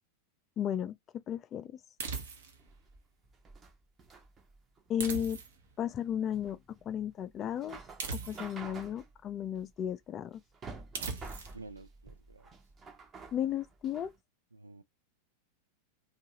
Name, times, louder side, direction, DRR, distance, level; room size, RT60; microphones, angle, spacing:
voice 1, 0.6-1.0 1.3-1.8 4.9-5.4 5.8-6.6 6.9-7.8 8.1-10.4 13.3-14.1, left 9 dB, 30° left, 0.3 m, -34 dB
sound 1, 2.0-2.7 5.0-5.7 8.0-8.7 10.9-11.6, right 4 dB, 60° right, 0.8 m, -39 dB
sound 2, 2.6-14.2, right 4 dB, 20° right, 0.7 m, -50 dB
voice 2, 11.5-12.5 14.5-14.8, right 3 dB, 80° right, 0.4 m, -50 dB
2.7 x 2.3 x 2.9 m
figure-of-eight pair, 90°, 0 cm